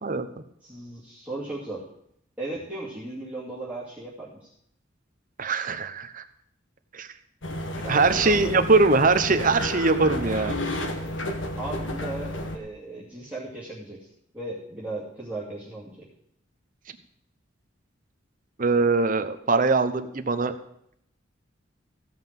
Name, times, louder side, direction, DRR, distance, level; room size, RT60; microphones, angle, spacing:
voice 1, 0.6-1.8 2.4-4.5 7.8-8.6 11.6-14.1 14.3-16.1, right 2 dB, 10° right, -8 dB, 2.4 m, -36 dB
voice 2, 5.4-6.2 6.9-7.1 7.9-10.6 18.6-20.5, right 3 dB, 45° right, 9 dB, 0.9 m, -22 dB
sound 1, 7.4-12.6, left 1 dB, 70° left, 1.6 m, -31 dB
15.5 x 5.8 x 7.6 m, 0.71 s
head